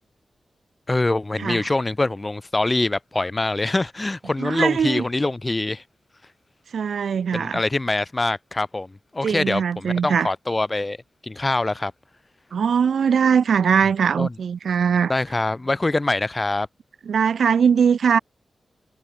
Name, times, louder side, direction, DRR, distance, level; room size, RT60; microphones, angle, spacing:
voice 1, 0.9-5.8 7.3-11.0 11.2-11.9 14.2-14.3 15.1-16.7, left 2 dB, 30° left, 2.4 m, -24 dB
voice 2, 4.4-5.0 6.7-7.6 9.2-10.3 12.5-15.1 17.1-18.2, right 7 dB, 80° right, 6.1 m, -20 dB
cardioid pair, 45°, 0 cm